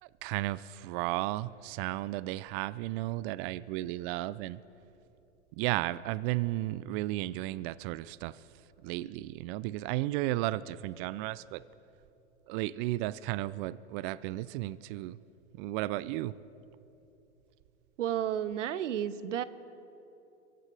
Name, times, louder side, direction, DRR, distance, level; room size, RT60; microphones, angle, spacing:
voice 1, 0.0-4.6 5.5-8.4 8.8-11.6 12.5-15.2 15.5-16.3, right 17 dB, 50° right, 18 dB, 0.4 m, -34 dB
voice 2, 18.0-19.4, right 10 dB, 85° right, 16 dB, 0.7 m, -32 dB
23.5 x 15.0 x 3.3 m, 2.9 s
hypercardioid pair, 105°, 36 cm